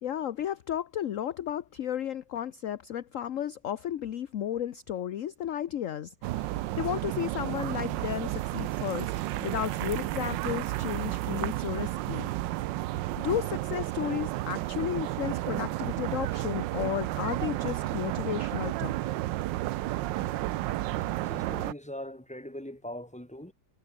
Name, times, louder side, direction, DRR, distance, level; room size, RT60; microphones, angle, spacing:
voice 1, 0.0-9.1 9.4-12.3 13.2-19.1, left 10 dB, 55° left, 0.9 m, -33 dB
sound 1, 6.2-21.7, right 16 dB, 75° right, 1.2 m, -32 dB
voice 2, 21.0-23.5, left 1 dB, 5° left, 3.3 m, -41 dB
omnidirectional pair, 2.1 m